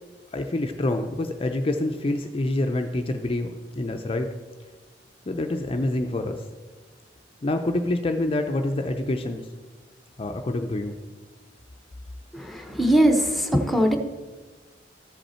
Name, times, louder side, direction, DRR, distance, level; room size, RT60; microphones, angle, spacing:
voice 1, 0.3-3.5 3.7-4.3 5.3-6.4 7.4-9.5 10.2-11.0, left 2 dB, 30° left, 5 dB, 0.5 m, -26 dB
voice 2, 12.3-14.0, right 1 dB, ahead, 4 dB, 0.8 m, -21 dB
13.5 x 5.4 x 4.3 m, 1.3 s
head